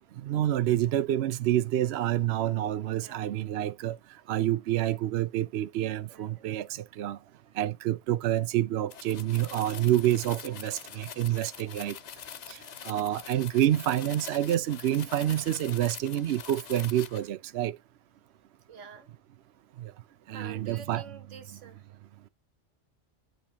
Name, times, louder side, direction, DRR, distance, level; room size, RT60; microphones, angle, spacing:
voice 1, 0.2-4.0 4.3-7.2 7.6-12.0 12.5-12.6 12.8-17.7 19.8-19.9 20.3-21.0, right 12 dB, 70° right, 0.8 m, -28 dB
voice 2, 3.0-3.3 6.1-6.5 8.3-8.4 18.7-19.1 20.3-21.9, right 5 dB, 85° right, 1.4 m, -47 dB
sound 1, 8.9-17.3, left 8 dB, 50° left, 0.5 m, -44 dB
10.5 x 3.9 x 2.8 m
omnidirectional pair, 1.2 m